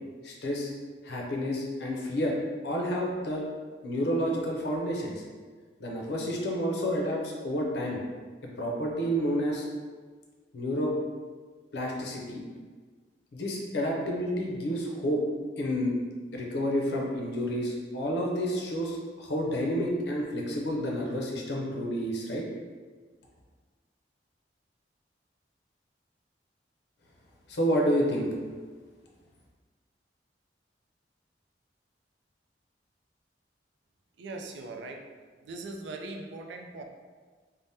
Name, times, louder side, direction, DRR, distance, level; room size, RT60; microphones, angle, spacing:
voice 1, 0.2-0.7 1.0-2.4 2.6-3.4 3.8-5.2 5.8-8.0 8.6-9.6 10.5-10.9 11.7-12.4 13.3-15.2 15.6-15.9 16.3-22.4 27.5-28.3, equal, 65° left, -1 dB, 0.5 m, -29 dB
voice 2, 34.2-35.1 35.4-36.8, right 2 dB, 80° right, 3 dB, 0.4 m, -40 dB
3.3 x 2.0 x 2.7 m, 1.5 s
head